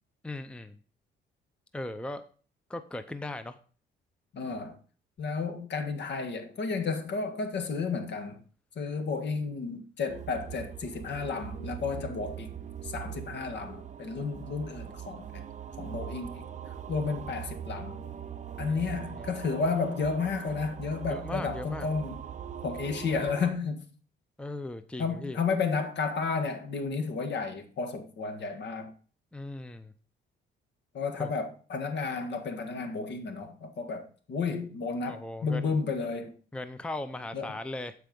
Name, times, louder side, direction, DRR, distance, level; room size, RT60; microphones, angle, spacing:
voice 1, 0.2-0.8 1.7-2.2 2.7-3.6 18.7-18.8 19.1-19.3 21.1-21.9 24.4-25.4 29.3-29.9 31.2-31.3 35.1-35.8 36.5-37.9, left 2 dB, 5° left, 0.6 m, -38 dB
voice 2, 4.3-4.7 5.2-8.4 8.7-12.5 12.8-15.4 15.8-16.4 16.9-18.0 18.6-22.2 22.6-23.8 25.0-28.9 30.9-36.3 37.3-37.4, left 4 dB, 60° left, 1.7 m, -32 dB
sound 1, 10.1-23.5, right 9 dB, 35° right, 0.7 m, -41 dB
12.5 x 4.7 x 5.3 m
cardioid pair, 90°, 20 cm